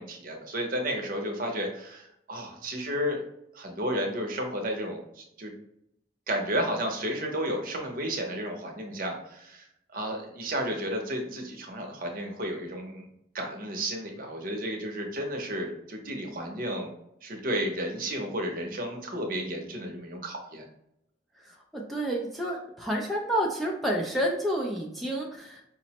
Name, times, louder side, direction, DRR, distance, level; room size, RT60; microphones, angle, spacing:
voice 1, 0.0-3.2 3.5-5.5 6.3-9.7 9.9-13.0 13.3-16.9 17.2-20.6, equal, 50° right, 2 dB, 0.7 m, -32 dB
voice 2, 21.7-25.6, equal, ahead, -2 dB, 0.4 m, -29 dB
5.0 x 2.0 x 2.8 m, 0.79 s
head